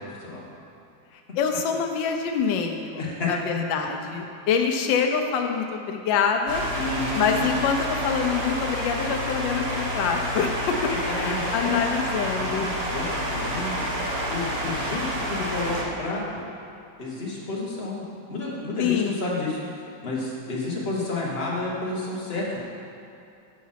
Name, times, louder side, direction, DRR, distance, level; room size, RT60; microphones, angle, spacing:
voice 1, 1.3-6.6 7.2-12.7 18.8-19.2, left 6 dB, 85° left, 4 dB, 1.4 m, -25 dB
voice 2, 3.0-3.3 6.7-7.4 11.0-11.8 12.4-13.8 14.3-16.4 17.0-18.0 18.3-22.6, left 2 dB, 35° left, -4 dB, 1.4 m, -30 dB
sound 1, 6.5-15.8, equal, 40° right, 1.1 m, -29 dB
6.2 x 5.7 x 5.6 m, 2.7 s
omnidirectional pair, 2.0 m